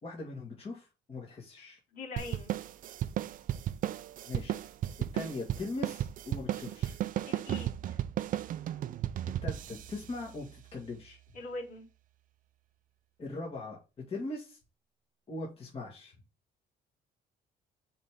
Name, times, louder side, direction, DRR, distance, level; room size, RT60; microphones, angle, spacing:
voice 1, 0.0-1.8 4.3-4.5 5.1-7.0 9.4-11.2 13.2-13.8 14.1-14.6 15.3-16.1, left 2 dB, 35° left, -2 dB, 1.8 m, -40 dB
voice 2, 1.9-2.5 7.3-8.0 11.3-11.9, left 2 dB, 60° left, -3 dB, 3.0 m, -42 dB
sound 1, 2.2-11.0, right 12 dB, 55° right, 0.5 m, -35 dB
5.7 x 3.6 x 5.0 m, 0.29 s
cardioid pair, 110°, 17 cm